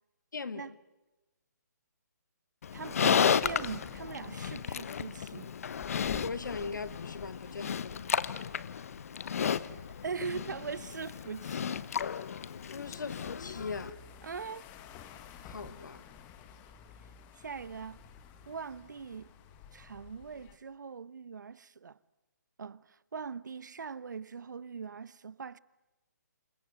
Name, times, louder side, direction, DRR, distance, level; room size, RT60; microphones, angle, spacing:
voice 1, 0.3-0.7 6.2-8.0 12.7-14.0 15.5-16.0, left 4 dB, 80° left, 2.2 m, -39 dB
Livestock farm animals working animals, 2.6-13.9, left 7 dB, 50° left, 1.1 m, -33 dB
voice 2, 2.7-5.6 9.5-9.6 10.0-11.9 14.2-14.7 17.4-18.0 18.5-19.3 19.7-22.0 22.6-25.6, right 5 dB, 75° right, 1.1 m, -41 dB
sound 1, 3.4-20.6, left 7 dB, 20° left, 1.5 m, -53 dB
28.0 x 23.0 x 7.9 m
hypercardioid pair, 160°, 10 cm